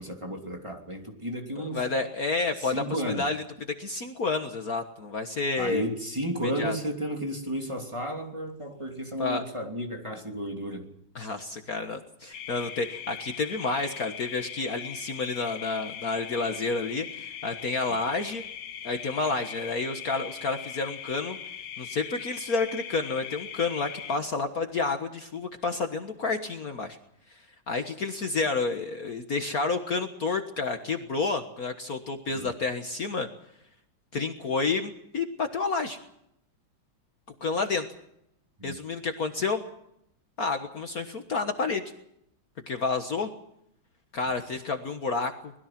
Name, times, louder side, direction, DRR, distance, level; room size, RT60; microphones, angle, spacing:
voice 1, 0.0-1.9 2.6-3.3 5.6-10.8 32.3-32.5 38.6-38.8, equal, 15° right, 2 dB, 3.1 m, -33 dB
voice 2, 1.6-3.4 3.8-5.9 6.4-6.8 9.2-9.4 11.2-18.4 18.8-21.4 21.8-27.0 27.7-33.3 34.1-36.0 37.4-37.9 38.6-39.6 40.4-41.8 42.7-43.3 44.1-45.5, left 4 dB, 50° left, 6 dB, 1.8 m, -30 dB
sound 1, 12.3-24.2, left 9 dB, 65° left, 1.7 m, -40 dB
24.5 x 21.0 x 6.0 m, 0.76 s
omnidirectional pair, 2.2 m